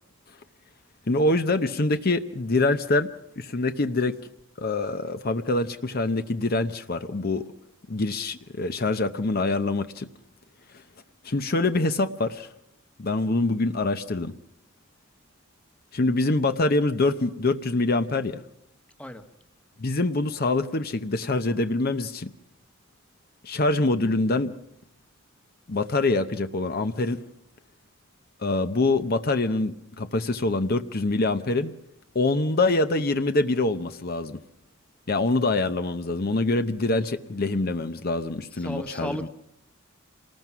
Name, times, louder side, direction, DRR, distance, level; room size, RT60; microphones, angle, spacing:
voice 1, 1.1-3.1 3.4-4.2 4.6-7.4 7.9-10.1 11.2-12.5 13.0-14.3 15.9-18.4 19.8-22.3 23.4-24.5 25.7-27.2 28.4-31.7 32.1-34.4 35.1-39.2, left 2 dB, 45° left, 9 dB, 0.8 m, -25 dB
voice 2, 38.6-39.3, equal, 5° left, 7 dB, 1.2 m, -34 dB
27.5 x 19.5 x 6.1 m, 0.79 s
head